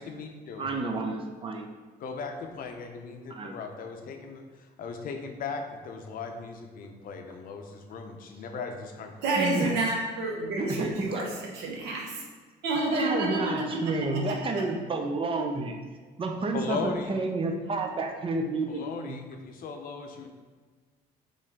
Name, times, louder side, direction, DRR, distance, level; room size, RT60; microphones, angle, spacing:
voice 1, 0.0-0.7 2.0-9.4 16.5-17.1 18.7-20.3, left 4 dB, 55° left, 4 dB, 0.6 m, -37 dB
voice 2, 0.6-1.7 3.3-3.6 9.3-9.7 10.5-11.2 12.9-15.8 16.2-19.2, right 3 dB, 30° right, 3 dB, 0.6 m, -30 dB
voice 3, 9.2-11.3 11.5-12.2 12.6-13.8 14.1-14.6, right 2 dB, 85° right, -1 dB, 0.9 m, -29 dB
4.2 x 3.2 x 3.6 m, 1.5 s
cardioid pair, 110°, 17 cm